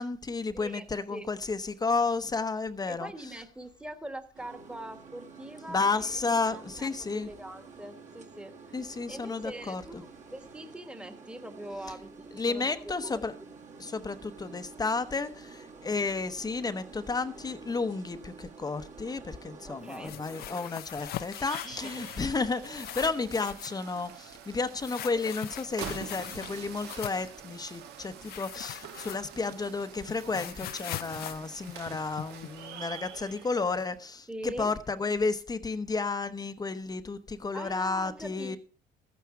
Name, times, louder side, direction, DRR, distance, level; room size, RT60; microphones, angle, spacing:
voice 1, 0.0-3.1 5.7-7.3 8.7-9.8 12.4-13.3 13.8-38.6, left 4 dB, 20° left, 0.9 m, -32 dB
voice 2, 0.5-0.8 1.1-1.3 2.9-8.8 9.1-13.5 19.7-20.4 21.6-22.0 34.3-34.7 37.5-38.6, right 1 dB, 5° right, 1.3 m, -43 dB
sound 1, 4.3-20.7, right 4 dB, 45° right, 1.8 m, -49 dB
sound 2, 19.9-22.4 22.6-23.8 24.8-27.3 28.2-29.5 29.8-32.5, left 14 dB, 65° left, 0.5 m, -41 dB
piovono pietre, 20.0-34.0, right 9 dB, 80° right, 1.2 m, -46 dB
13.5 x 9.4 x 4.7 m
cardioid pair, 110°, 17 cm